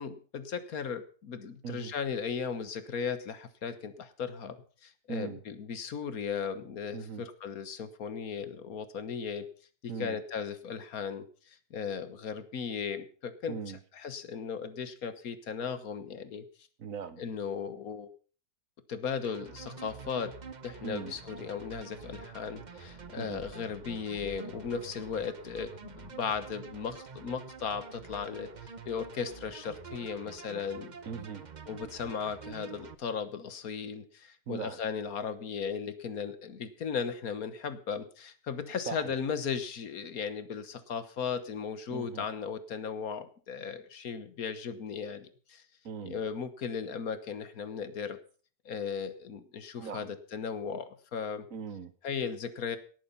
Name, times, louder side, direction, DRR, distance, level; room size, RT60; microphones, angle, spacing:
voice 1, 0.0-4.6 4.8-9.5 9.8-13.6 13.9-16.4 17.2-18.1 18.9-20.3 20.6-30.9 31.7-45.6 46.0-48.2 48.6-51.5 52.0-52.8, left 6 dB, 70° left, 12 dB, 1.6 m, -36 dB
voice 2, 5.1-5.4 6.9-7.3 9.9-10.2 13.5-13.8 16.8-17.2 20.8-21.1 23.2-23.4 31.1-31.4 34.5-34.8 38.9-39.1 41.9-42.3 45.8-46.2 49.8-50.1 51.5-51.9, right 6 dB, 65° right, 13 dB, 1.4 m, -39 dB
sound 1, 19.2-32.9, right 5 dB, 35° right, 0.8 m, -47 dB
18.5 x 8.5 x 5.6 m, 0.41 s
omnidirectional pair, 1.6 m